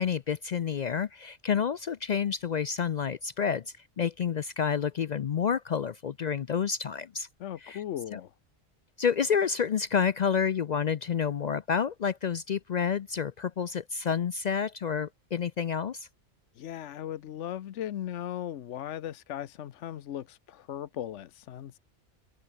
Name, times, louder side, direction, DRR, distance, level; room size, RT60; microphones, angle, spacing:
voice 1, 0.0-3.6 4.0-7.3 7.6-7.8 8.1-8.2 9.0-16.1, left 7 dB, 55° left, 0.5 m, -29 dB
voice 2, 7.4-8.3 16.5-21.8, left 11 dB, 85° left, 1.0 m, -37 dB
omnidirectional pair, 1.2 m